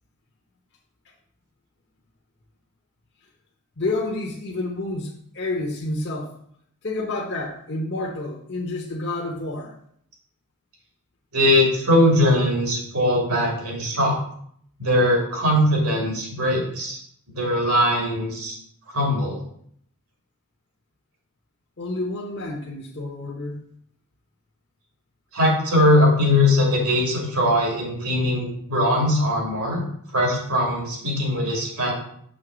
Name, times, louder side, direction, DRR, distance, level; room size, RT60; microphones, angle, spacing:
voice 1, 3.8-6.3 6.8-9.7 21.8-23.6, left 2 dB, 50° left, -2 dB, 0.9 m, -29 dB
voice 2, 11.3-14.2 14.8-17.0 17.3-18.6 18.9-19.4 25.3-29.8 30.1-31.9, left 1 dB, 75° right, -1 dB, 2.5 m, -20 dB
6.5 x 3.5 x 6.0 m, 0.65 s
head